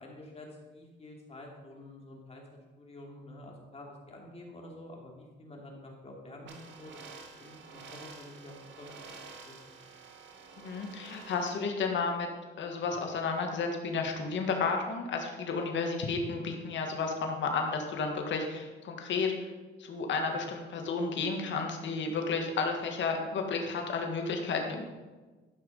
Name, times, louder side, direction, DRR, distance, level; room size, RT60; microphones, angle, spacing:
voice 1, 0.0-2.4 2.8-6.9 7.4-9.1 9.4-9.5 20.2-20.4, left 1 dB, 30° left, -1 dB, 2.9 m, -48 dB
sound 1, 6.5-11.5, right 4 dB, 70° right, 2.1 m, -49 dB
voice 2, 10.6-12.3 12.6-19.5 19.8-24.8, left 4 dB, 65° left, 3 dB, 1.9 m, -32 dB
12.5 x 6.0 x 5.5 m, 1.3 s
cardioid pair, 90°, 20 cm